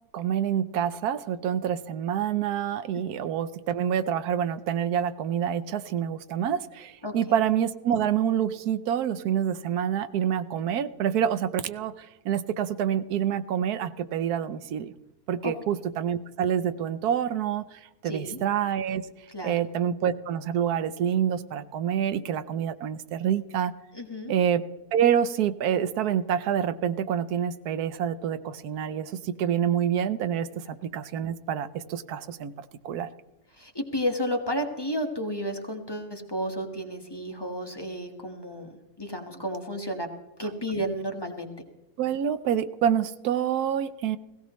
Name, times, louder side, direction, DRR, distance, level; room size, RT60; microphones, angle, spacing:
voice 1, 0.1-14.9 15.3-19.0 19.4-23.7 24.3-24.6 24.9-32.5 32.8-33.1 42.0-44.2, right 9 dB, 85° right, 13 dB, 1.2 m, -27 dB
voice 2, 7.0-7.4 15.4-15.5 18.0-18.4 19.3-19.5 23.9-24.3 33.5-38.7 39.0-40.1 40.4-41.5, equal, 15° left, 3 dB, 1.4 m, -32 dB
18.0 x 17.0 x 3.1 m, 0.99 s
omnidirectional pair, 1.6 m